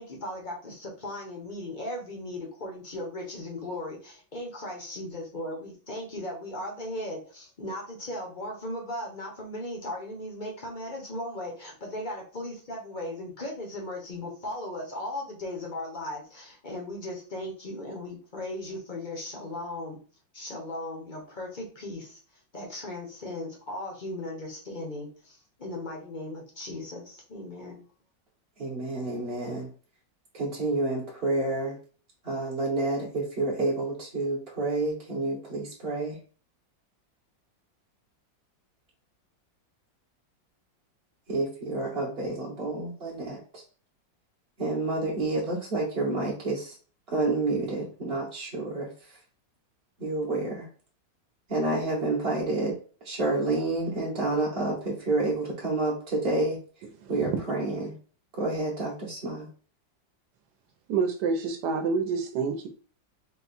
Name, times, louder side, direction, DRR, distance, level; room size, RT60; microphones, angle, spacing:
voice 1, 0.0-20.0 20.3-22.2 22.5-27.8, left 1 dB, 40° left, 0 dB, 0.7 m, -37 dB
voice 2, 28.6-29.7 30.3-31.8 32.2-36.2 41.3-43.6 44.6-46.8 47.1-49.2 50.0-50.7 51.5-52.7 53.0-56.6 57.1-57.9 58.3-59.5, right 2 dB, 40° right, -5 dB, 1.0 m, -29 dB
voice 3, 57.0-57.3 60.9-62.7, right 5 dB, 70° right, 6 dB, 1.3 m, -28 dB
4.2 x 2.3 x 4.1 m, 0.40 s
omnidirectional pair, 2.1 m